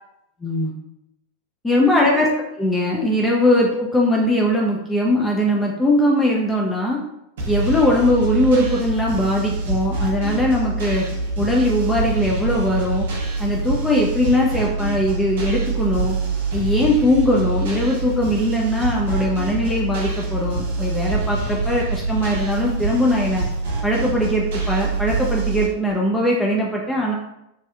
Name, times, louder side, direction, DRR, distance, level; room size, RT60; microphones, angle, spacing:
voice 1, 0.4-0.7 1.6-2.3 2.6-7.0 7.5-11.1 11.4-13.1 13.4-16.2 16.5-23.4 23.8-27.1, left 1 dB, 10° left, -2 dB, 0.4 m, -20 dB
sound 1, 7.4-25.7, right 3 dB, 55° right, 0.6 m, -25 dB
2.7 x 2.3 x 2.3 m, 0.84 s
figure-of-eight pair, 90°, 0 cm